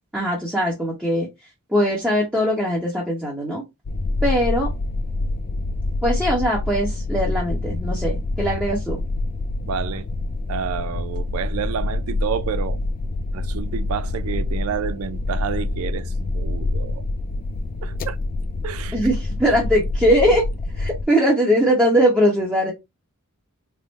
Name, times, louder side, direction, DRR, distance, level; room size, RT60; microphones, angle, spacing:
voice 1, 0.1-1.3 1.7-3.6 4.2-4.7 6.0-9.0 18.9-20.4 20.7-22.7, equal, 5° right, 0.9 m, -20 dB
sound 1, 3.9-21.0, left 2 dB, 40° left, 0.4 m, -26 dB
voice 2, 9.6-10.1 10.5-12.8 13.3-17.0 17.8-18.2 18.6-19.0, right 7 dB, 70° right, 0.4 m, -29 dB
3.5 x 2.1 x 3.9 m
head